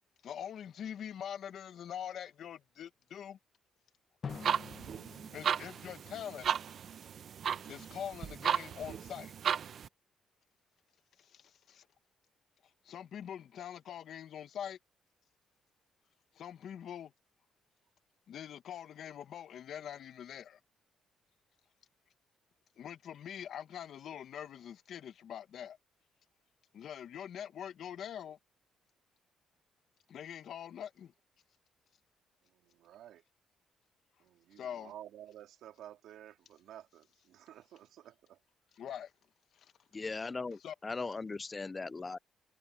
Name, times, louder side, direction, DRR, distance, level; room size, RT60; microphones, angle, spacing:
voice 1, 0.2-3.4 5.3-6.5 7.7-9.3 11.3-11.8 12.8-14.8 16.3-17.1 18.3-20.6 22.8-25.8 26.7-28.4 30.1-31.1 34.6-34.9 38.8-39.1 39.6-39.7 40.6-40.7, left 9 dB, 65° left, 1.4 m, -44 dB
Drum, 4.2-6.9, left 6 dB, 45° left, 1.2 m, -48 dB
sound 1, 4.3-9.9, right 8 dB, 60° right, 0.8 m, -35 dB
voice 2, 32.4-33.2 34.2-38.4, right 12 dB, 80° right, 3.2 m, -53 dB
voice 3, 39.9-42.2, left 3 dB, 25° left, 0.4 m, -39 dB
cardioid pair, 90°, 0 cm